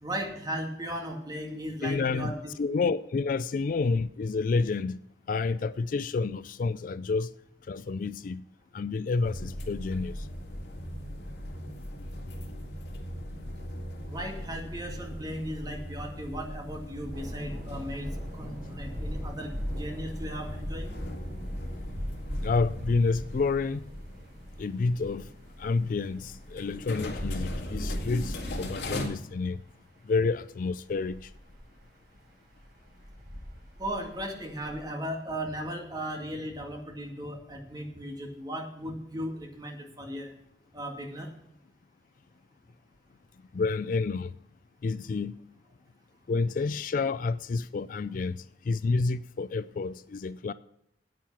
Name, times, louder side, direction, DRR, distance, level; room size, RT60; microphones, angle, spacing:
voice 1, 0.0-2.5 14.0-21.0 33.8-40.3 40.7-41.3, equal, 25° right, 2.0 m, -37 dB
voice 2, 1.8-2.3 2.6-5.0 5.3-7.3 7.7-8.4 8.7-10.3 22.4-23.8 24.6-25.3 25.6-29.6 30.1-31.3 43.5-44.3 44.8-45.4 46.3-48.4 48.7-50.5, left 4 dB, 50° left, 0.3 m, -29 dB
sound 1, 9.2-29.1, equal, 80° left, 2.2 m, -39 dB
sound 2, 17.1-34.8, equal, 60° right, 4.8 m, -41 dB
9.3 x 9.0 x 5.5 m
head